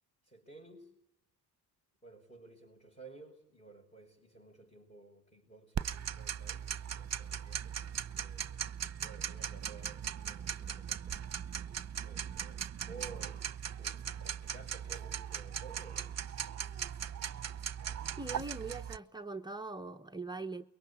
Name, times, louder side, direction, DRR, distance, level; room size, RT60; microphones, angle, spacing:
voice 1, 0.2-0.9 2.0-7.8 8.1-8.6 9.0-11.2 12.0-16.2, right 4 dB, 20° left, 6.3 m, -54 dB
Tick-tock, 5.7-19.0, right 8 dB, 40° right, 1.1 m, -39 dB
voice 2, 18.2-20.7, right 3 dB, 10° right, 1.0 m, -41 dB
29.0 x 23.5 x 8.5 m
cardioid pair, 85°, 40 cm